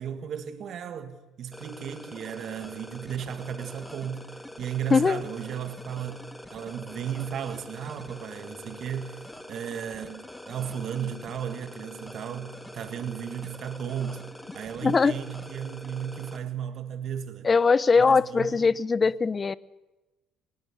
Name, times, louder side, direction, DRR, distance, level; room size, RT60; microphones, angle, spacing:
voice 1, 0.0-4.3 4.6-6.2 6.5-9.2 9.5-14.3 14.5-17.5 18.0-18.7, right 8 dB, 60° right, 1.9 m, -35 dB
sound 1, 1.5-16.4, left 1 dB, 10° left, 1.9 m, -44 dB
voice 2, 4.9-5.2 14.8-15.2 17.4-19.5, left 4 dB, 35° left, 0.8 m, -21 dB
20.0 x 19.0 x 6.9 m
hypercardioid pair, 60°, 0 cm